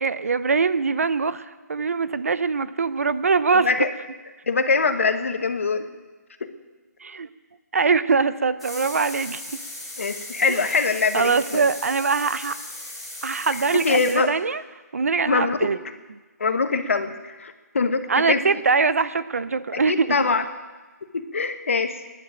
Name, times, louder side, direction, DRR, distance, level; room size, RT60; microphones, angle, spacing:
voice 1, 0.0-3.7 7.0-7.3 7.7-9.4 10.5-10.7 11.1-12.6 13.2-14.6 14.9-15.8 18.1-20.3, right 4 dB, 55° right, 15 dB, 0.6 m, -22 dB
voice 2, 3.5-3.9 4.5-5.8 6.4-6.5 10.0-11.6 13.7-14.3 15.3-15.7 16.4-18.4 19.7-20.4 21.1-22.0, left 4 dB, 50° left, 8 dB, 1.2 m, -23 dB
sound 1, 8.6-14.1, left 1 dB, ahead, 1.5 m, -37 dB
15.0 x 11.0 x 8.7 m, 1.2 s
hypercardioid pair, 180°, 9 cm